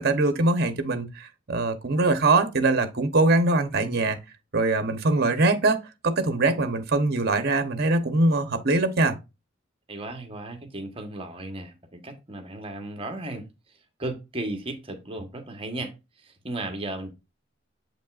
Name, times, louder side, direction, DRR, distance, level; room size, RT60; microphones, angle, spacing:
voice 1, 0.0-4.2 4.5-9.2, right 2 dB, 50° right, 1.0 m, -23 dB
voice 2, 9.9-13.4 14.0-17.1, right 2 dB, 30° right, 1.2 m, -35 dB
7.6 x 5.2 x 2.5 m
head